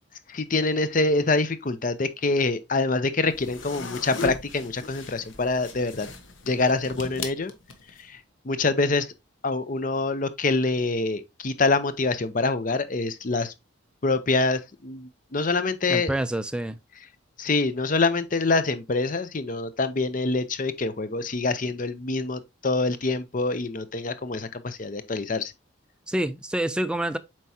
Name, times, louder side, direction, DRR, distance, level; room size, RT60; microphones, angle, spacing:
voice 1, 0.3-6.1 6.5-7.5 8.0-8.2 8.4-9.1 9.4-13.5 14.0-16.1 17.4-25.5, left 3 dB, 40° left, 0.6 m, -25 dB
sound 1, 3.3-8.0, left 3 dB, 70° left, 1.2 m, -38 dB
voice 2, 15.9-16.8 26.1-27.2, right 1 dB, 5° right, 0.4 m, -27 dB
7.5 x 4.7 x 2.7 m
head